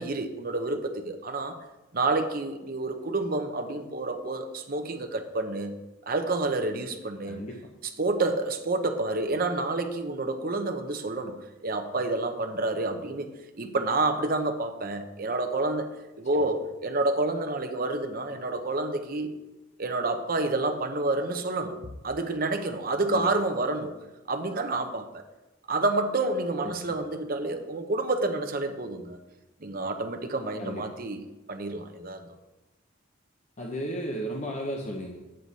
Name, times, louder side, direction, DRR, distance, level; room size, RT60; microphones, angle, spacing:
voice 1, 0.0-1.6 1.9-5.8 6.1-7.4 8.0-13.3 13.6-15.9 16.2-19.3 19.8-23.9 24.3-25.2 25.7-29.2 29.6-31.2 31.5-32.4, right 2 dB, 50° right, 6 dB, 0.8 m, -29 dB
voice 2, 7.2-7.6 16.3-16.5 23.1-23.3 26.6-27.0 30.6-30.9 33.6-35.2, equal, 40° left, 0 dB, 0.8 m, -34 dB
8.1 x 7.7 x 4.1 m, 1.0 s
head